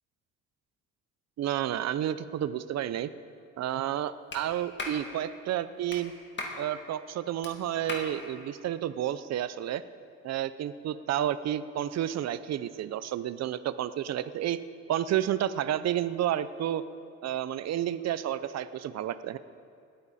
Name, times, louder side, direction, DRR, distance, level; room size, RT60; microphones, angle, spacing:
voice 1, 1.4-3.1 3.6-6.1 6.6-9.8 10.2-14.6 14.9-16.8 17.2-19.4, right 11 dB, 60° right, 14 dB, 0.6 m, -31 dB
Clapping, 4.3-4.4 4.8-5.0 5.9-6.0 6.4-6.6 7.4-7.5 7.9-8.1, left 2 dB, 35° left, 2.1 m, -36 dB
20.0 x 9.6 x 4.2 m, 2.4 s
cardioid pair, 90°, 30 cm